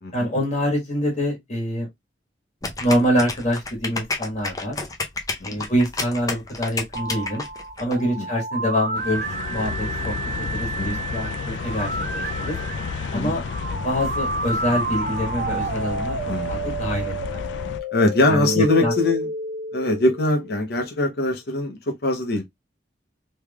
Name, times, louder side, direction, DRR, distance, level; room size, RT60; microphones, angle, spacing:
voice 1, 0.1-1.9 2.8-4.8 5.4-7.4 7.8-12.6 13.1-13.4 13.8-16.2 16.5-17.4 18.2-18.9, equal, 40° left, 1.4 m, -25 dB
sound 1, 2.6-7.9, left 3 dB, 20° left, 0.6 m, -30 dB
sound 2, 6.9-20.8, right 2 dB, 50° right, 0.6 m, -30 dB
sound 3, 8.9-17.8, left 5 dB, 75° left, 0.3 m, -31 dB
voice 2, 17.9-19.3 19.7-22.4, left 2 dB, 60° left, 0.8 m, -22 dB
3.4 x 3.1 x 2.3 m
head